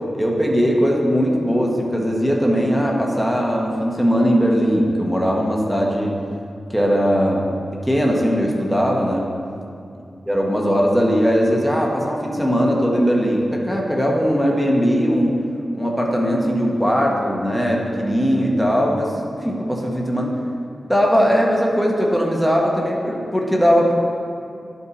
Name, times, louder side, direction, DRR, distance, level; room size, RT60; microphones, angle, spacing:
voice 1, 0.1-6.2 6.7-7.5 7.8-9.3 10.3-15.4 15.7-19.1 19.4-20.4 20.9-23.9, equal, ahead, -2 dB, 1.0 m, -19 dB
11.5 x 5.6 x 4.1 m, 2.5 s
wide cardioid pair, 120°, 0 cm